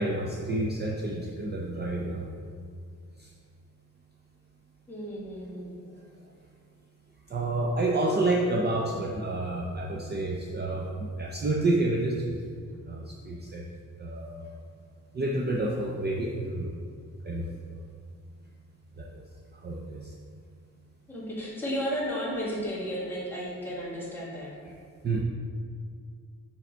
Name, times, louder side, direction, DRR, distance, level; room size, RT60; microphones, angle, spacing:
voice 1, 0.0-2.2 3.2-3.3 7.3-12.4 12.9-13.6 14.0-14.5 15.1-16.7 17.2-17.5 19.0-19.1 19.6-20.1 25.0-25.2, right 2 dB, 30° right, -1 dB, 0.4 m, -29 dB
voice 2, 4.9-5.7 21.1-24.5, equal, 5° left, -9 dB, 1.6 m, -33 dB
5.4 x 4.9 x 4.4 m, 2.2 s
wide cardioid pair, 170°, 33 cm